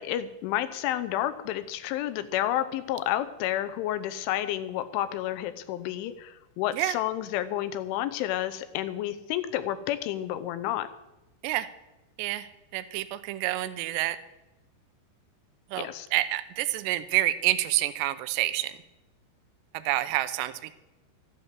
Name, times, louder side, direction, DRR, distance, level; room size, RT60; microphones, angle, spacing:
voice 1, 0.0-10.9 15.8-16.1, left 12 dB, 85° left, 12 dB, 3.3 m, -30 dB
voice 2, 12.2-14.2 15.7-18.7 19.7-20.7, right 15 dB, 80° right, 13 dB, 2.7 m, -28 dB
13.5 x 9.4 x 7.4 m, 0.99 s
omnidirectional pair, 5.4 m